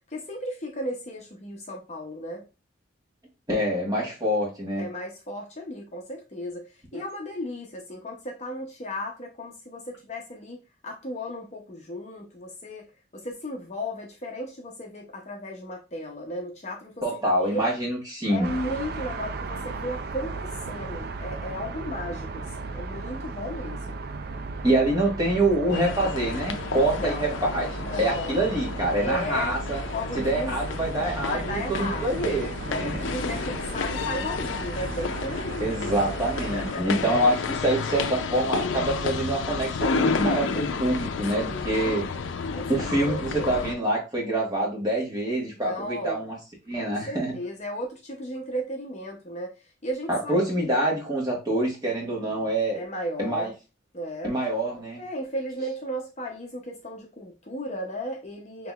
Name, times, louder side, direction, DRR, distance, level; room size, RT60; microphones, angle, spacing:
voice 1, 0.1-2.4 4.8-6.7 6.9-17.7 18.3-24.0 26.9-27.3 27.9-28.4 29.0-29.6 29.9-30.5 31.2-32.3 32.7-36.0 36.4-37.0 41.4-42.1 42.5-43.5 45.6-46.2 46.8-50.7 52.7-53.5 53.9-54.4 55.0-58.7, equal, 35° left, 0.7 m, -35 dB
voice 2, 3.5-4.9 6.9-7.0 17.0-18.5 24.6-27.7 28.0-29.8 30.2-32.9 33.3-33.4 35.6-42.0 42.7-46.4 46.7-47.3 50.1-52.8 53.2-53.5 54.2-55.0, right 1 dB, 20° right, 1.3 m, -26 dB
sound 1, 18.4-36.7, right 3 dB, 50° right, 0.4 m, -35 dB
sound 2, 25.7-43.7, left 5 dB, 75° left, 0.4 m, -31 dB
6.0 x 2.9 x 2.3 m
head